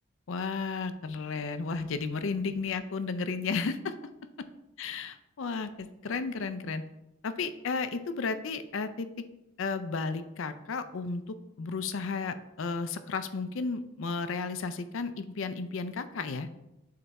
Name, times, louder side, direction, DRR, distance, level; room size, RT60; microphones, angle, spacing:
voice 1, 0.3-3.9 4.8-6.8 7.2-9.1 9.6-16.5, left 4 dB, 65° left, 11 dB, 0.4 m, -33 dB
7.5 x 3.4 x 4.1 m, 0.93 s
head